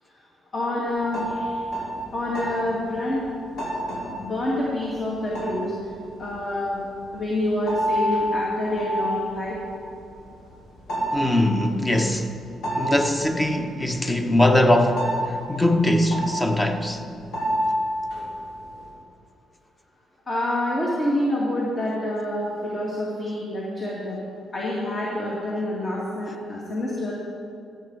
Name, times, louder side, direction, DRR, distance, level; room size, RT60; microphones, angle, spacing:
voice 1, 0.5-1.6 2.1-3.2 4.2-5.7 6.2-6.8 7.1-9.6 20.3-24.2 24.5-27.1, left 1 dB, 35° left, 2.4 m, -27 dB
sound 1, 0.9-18.9, equal, 75° left, 2.8 m, -30 dB
voice 2, 11.1-12.3 12.8-17.0, left 1 dB, 15° left, 1.0 m, -21 dB
14.5 x 8.0 x 4.9 m
cardioid pair, 90°, 0 cm